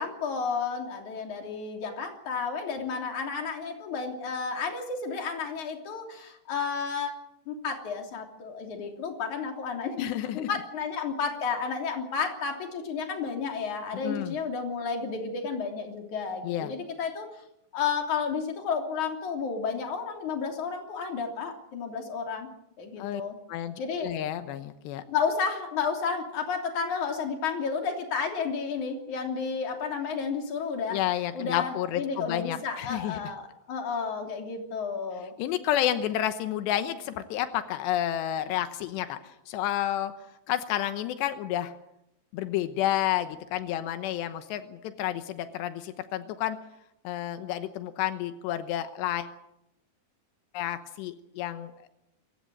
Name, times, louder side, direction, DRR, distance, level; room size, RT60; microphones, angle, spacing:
voice 1, 0.0-7.1 7.5-17.3 17.7-22.5 22.8-23.3 23.8-24.1 25.1-31.0 31.3-35.3, left 5 dB, 50° left, 3 dB, 4.3 m, -32 dB
voice 2, 10.0-10.5 13.9-14.4 16.4-16.7 23.0-23.2 23.5-25.0 30.9-33.2 35.4-40.1 40.5-41.7 42.3-46.6 47.0-49.3 50.5-51.9, left 12 dB, 90° left, 10 dB, 3.2 m, -30 dB
27.0 x 15.0 x 7.7 m, 0.82 s
omnidirectional pair, 4.9 m